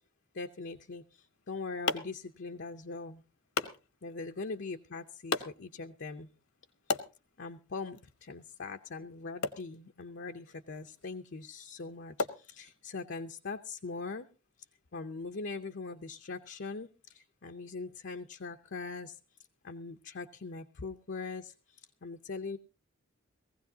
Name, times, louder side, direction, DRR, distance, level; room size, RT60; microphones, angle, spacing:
voice 1, 0.3-3.2 4.0-6.3 7.4-14.3 14.9-19.2 19.6-22.6, left 4 dB, 55° left, 5 dB, 0.6 m, -41 dB
sound 1, 1.2-13.1, left 4 dB, 75° left, 1.0 m, -41 dB
19.5 x 15.5 x 2.8 m, 0.31 s
head